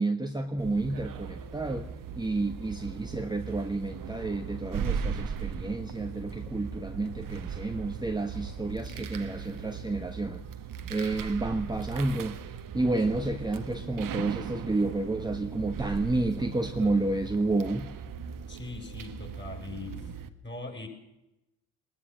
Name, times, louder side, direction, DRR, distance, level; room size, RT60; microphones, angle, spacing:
voice 1, 0.0-1.9 2.2-10.4 10.9-12.4 12.7-17.9, right 2 dB, 10° right, 5 dB, 1.3 m, -30 dB
sound 1, 0.6-20.3, right 6 dB, 50° right, 1.5 m, -38 dB
voice 2, 18.5-20.1 20.4-20.9, left 3 dB, 25° left, 3 dB, 6.8 m, -41 dB
21.0 x 20.0 x 6.2 m, 0.91 s
figure-of-eight pair, 40°, 42 cm